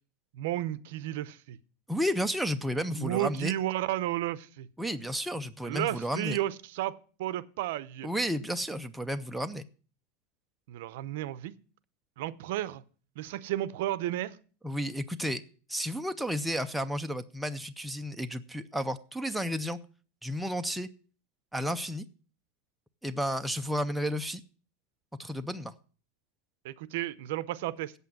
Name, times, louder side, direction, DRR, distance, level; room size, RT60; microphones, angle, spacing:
voice 1, 0.3-1.6 2.9-4.7 5.6-8.1 10.7-11.5 12.2-12.8 13.2-14.4 26.6-27.9, right 14 dB, 60° right, 0.6 m, -33 dB
voice 2, 1.9-3.5 4.8-6.4 8.0-9.6 14.6-15.4 15.7-19.8 20.2-20.9 21.5-22.0 23.0-24.4 25.2-25.7, equal, ahead, 0.4 m, -32 dB
8.3 x 7.9 x 7.6 m
supercardioid pair, 170°, 0 cm